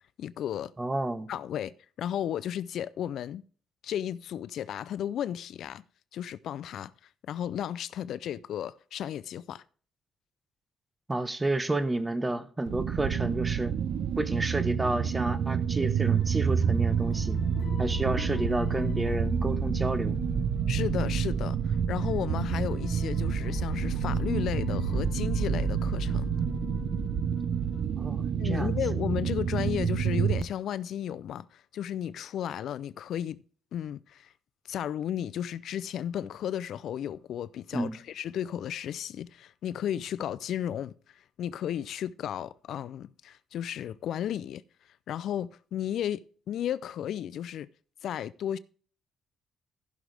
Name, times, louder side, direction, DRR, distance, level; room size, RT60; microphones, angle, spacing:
voice 1, 0.2-0.7 1.3-3.4 3.8-5.8 6.1-6.9 7.3-9.6 20.7-26.3 28.4-33.4 33.7-34.3 34.7-40.9 41.4-44.6 45.1-47.7 48.0-48.6, left 10 dB, 70° left, 0.4 m, -34 dB
voice 2, 0.8-1.3 11.1-13.7 14.2-17.4 17.8-20.2 28.0-28.8 37.7-38.0, right 2 dB, 20° right, 1.1 m, -30 dB
sound 1, 12.7-30.4, right 8 dB, 65° right, 0.7 m, -29 dB
sound 2, 16.1-27.8, left 5 dB, 55° left, 3.4 m, -38 dB
15.5 x 6.3 x 3.4 m
cardioid pair, 90°, 0 cm